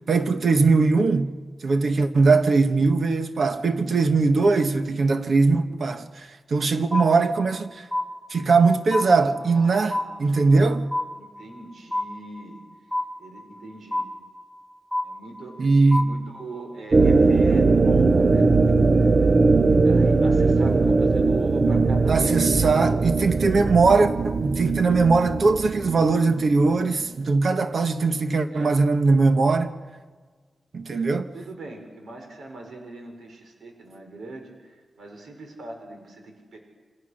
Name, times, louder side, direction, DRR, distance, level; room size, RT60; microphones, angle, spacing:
voice 1, 0.1-1.4 1.6-7.8 8.3-10.9 15.6-16.1 22.1-29.7 30.7-31.3, right 3 dB, 50° right, 1.3 m, -20 dB
sound 1, 6.9-7.6 7.9-8.6 8.9-9.6 9.9-10.6 10.9-11.6 11.9-12.6 12.9-13.6 13.9-14.6 14.9-15.6 15.9-16.6, left 1 dB, ahead, 5.3 m, -29 dB
voice 2, 9.0-10.6 11.1-12.6 13.2-14.1 15.0-15.7 15.9-19.3 19.6-22.4 28.5-28.8 30.9-31.1 31.3-36.6, right 2 dB, 75° right, 5.2 m, -41 dB
sound 2, 16.9-27.0, right 3 dB, 35° right, 0.7 m, -20 dB
27.5 x 25.5 x 6.5 m
wide cardioid pair, 165°, 0 cm